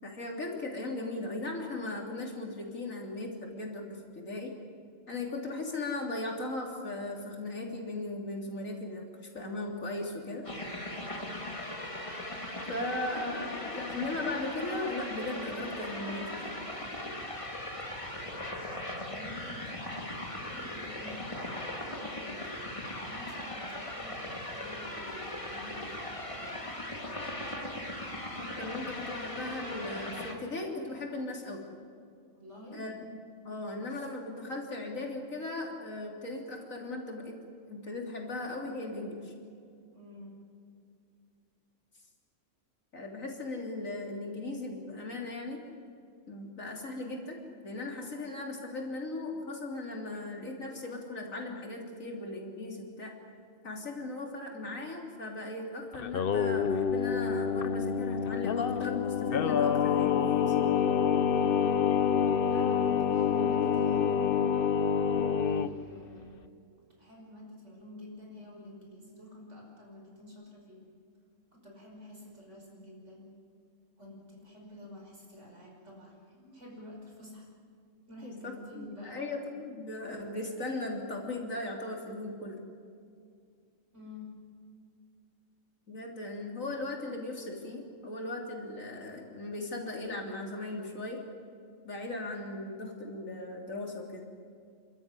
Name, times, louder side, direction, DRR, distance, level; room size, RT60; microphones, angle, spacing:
voice 1, 0.0-4.5 5.1-9.1 9.3-10.5 12.7-16.6 28.4-31.6 32.7-33.0 33.4-37.4 37.7-39.3 42.9-45.7 46.3-53.1 53.6-60.6 78.2-82.6 85.9-91.2 91.8-94.3, left 2 dB, 85° left, 0 dB, 3.7 m, -38 dB
sound 1, 10.4-30.3, left 1 dB, 25° left, 2.4 m, -39 dB
voice 2, 18.2-26.7 32.3-32.8 39.9-40.4 61.4-61.8 62.5-64.4 65.4-66.5 66.9-70.9 71.5-73.3 74.0-77.5 78.1-79.3 83.9-84.3, left 1 dB, 65° right, -1 dB, 5.9 m, -49 dB
Singing, 55.9-65.7, left 7 dB, 50° left, 0.8 m, -27 dB
30.0 x 13.0 x 9.9 m, 2.4 s
omnidirectional pair, 1.4 m